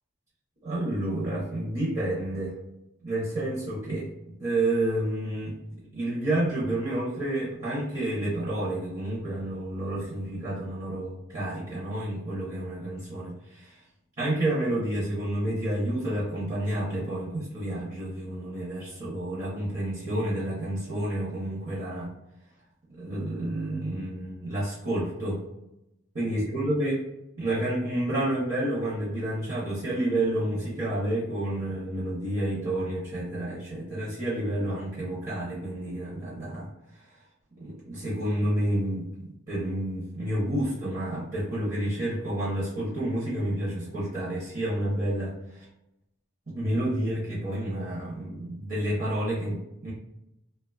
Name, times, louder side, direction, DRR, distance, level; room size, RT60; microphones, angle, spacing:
voice 1, 0.6-2.6 3.0-5.5 5.9-13.8 14.2-22.1 22.9-25.4 26.1-27.0 27.4-36.7 37.6-45.4 46.5-49.9, right 1 dB, 35° right, -7 dB, 0.7 m, -30 dB
2.9 x 2.2 x 2.2 m, 0.88 s
head